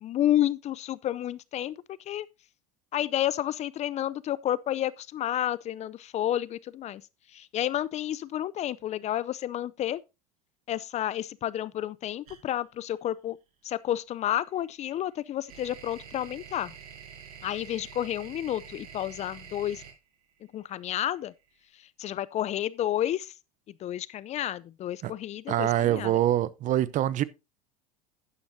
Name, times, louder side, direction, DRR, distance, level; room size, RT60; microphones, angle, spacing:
voice 1, 0.0-2.3 2.9-7.0 7.3-10.0 10.7-13.4 13.6-16.7 17.4-19.8 20.5-21.3 21.8-23.3 23.8-26.1, left 12 dB, 35° left, 0.5 m, -30 dB
sound 1, 12.3-12.4 14.5-21.5, right 7 dB, 75° right, 5.4 m, -47 dB
voice 2, 25.5-27.2, right 13 dB, 40° right, 0.7 m, -25 dB
11.5 x 9.7 x 2.7 m
hypercardioid pair, 90°, 19 cm